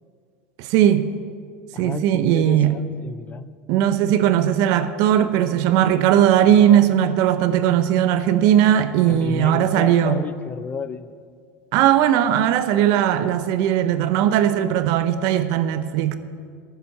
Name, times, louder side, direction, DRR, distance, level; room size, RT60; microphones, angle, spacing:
voice 1, 0.6-1.1 1.8-2.8 3.7-10.2 11.7-16.1, right 10 dB, 60° right, 0.7 m, -18 dB
voice 2, 1.7-3.5 9.1-11.1, left 6 dB, 25° left, 0.4 m, -32 dB
10.5 x 7.6 x 6.7 m
supercardioid pair, 105°, 7 cm